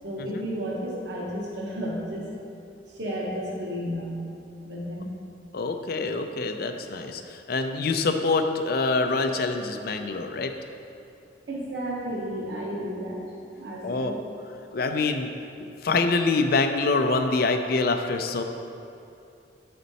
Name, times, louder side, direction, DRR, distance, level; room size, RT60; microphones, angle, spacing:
voice 1, 0.0-2.3 2.9-4.2 4.6-5.1 11.5-13.2 13.6-14.2, equal, 60° right, -4 dB, 1.0 m, -32 dB
voice 2, 5.5-10.5 13.8-14.1 14.7-15.3 15.8-18.4, left 3 dB, 50° left, 6 dB, 0.4 m, -25 dB
9.2 x 4.3 x 4.1 m, 2.7 s
head